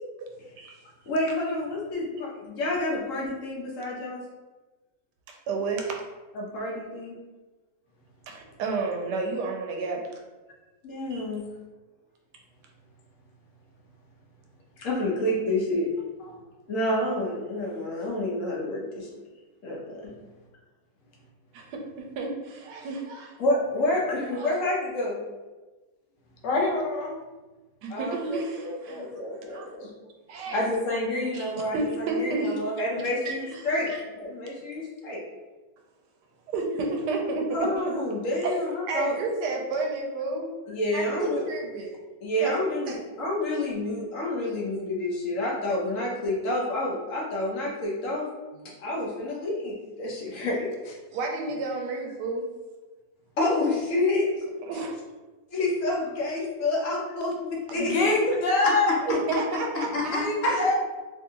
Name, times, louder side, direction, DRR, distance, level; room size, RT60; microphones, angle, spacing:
voice 1, 1.1-4.2 6.3-7.2 10.8-11.4 14.8-15.9 16.7-19.1 19.6-20.0 23.4-25.2 27.9-29.9 30.5-33.9 34.2-35.2 37.5-39.2 40.7-41.4 42.2-48.3 48.8-50.7 53.4-54.3 55.5-58.3 59.7-60.7, left 1 dB, 55° left, -4 dB, 1.1 m, -28 dB
voice 2, 5.3-5.9 8.3-10.0 11.1-11.2 21.5-23.3 24.4-24.5 27.8-29.1 29.5-29.7 30.3-30.7 31.3-31.4 31.7-32.6 33.2-34.0 36.5-37.9 38.4-40.5 40.9-41.9 42.4-42.6 42.9-43.0 51.1-52.5 54.6-55.0 59.0-59.9, right 3 dB, 80° right, 1 dB, 1.2 m, -31 dB
voice 3, 26.4-27.1 41.2-41.3 57.7-58.9 60.0-60.7, left 2 dB, 85° left, -1 dB, 1.5 m, -25 dB
3.6 x 2.6 x 2.8 m, 1.2 s
omnidirectional pair, 1.8 m